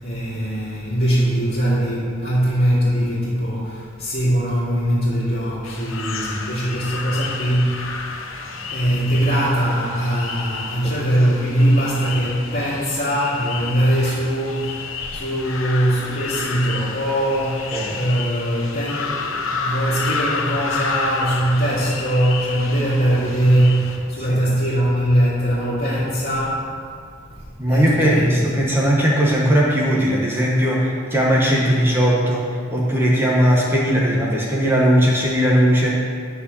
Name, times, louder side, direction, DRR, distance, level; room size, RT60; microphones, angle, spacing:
voice 1, 0.0-28.5, right 1 dB, 50° left, -12 dB, 2.5 m, -21 dB
sound 1, 5.6-24.0, left 4 dB, 75° left, 1.0 m, -30 dB
voice 2, 27.6-32.4 32.7-36.0, equal, 10° right, -4 dB, 1.2 m, -18 dB
10.0 x 4.9 x 6.9 m, 2.1 s
head